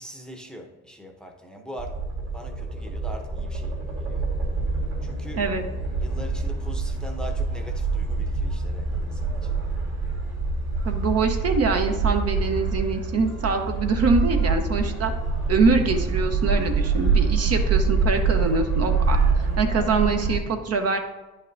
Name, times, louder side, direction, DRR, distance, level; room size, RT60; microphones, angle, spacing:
voice 1, 0.0-2.0 2.3-4.3 5.0-5.4 6.0-9.7, right 1 dB, 5° left, 2 dB, 0.7 m, -42 dB
sound 1, 1.8-20.4, right 4 dB, 85° right, 2.4 m, -25 dB
voice 2, 5.3-5.6 10.8-15.1 15.5-19.2 19.6-21.0, right 4 dB, 55° right, 5 dB, 0.9 m, -24 dB
9.7 x 5.4 x 2.6 m, 1.1 s
cardioid pair, 90°, 30 cm